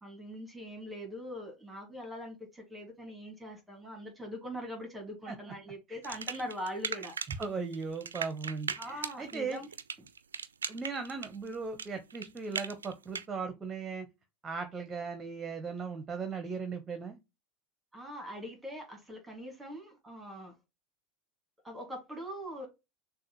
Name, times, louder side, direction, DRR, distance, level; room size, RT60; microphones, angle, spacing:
voice 1, 0.0-7.1 8.8-9.7 17.9-20.5 21.6-22.7, equal, 10° right, 2.0 m, -42 dB
sound 1, 6.0-7.5 7.7-13.3, right 6 dB, 90° right, 0.4 m, -38 dB
voice 2, 7.4-9.6 10.7-14.1 14.4-17.2, right 5 dB, 25° right, 0.9 m, -38 dB
6.2 x 2.5 x 3.0 m
hypercardioid pair, 85°, 0 cm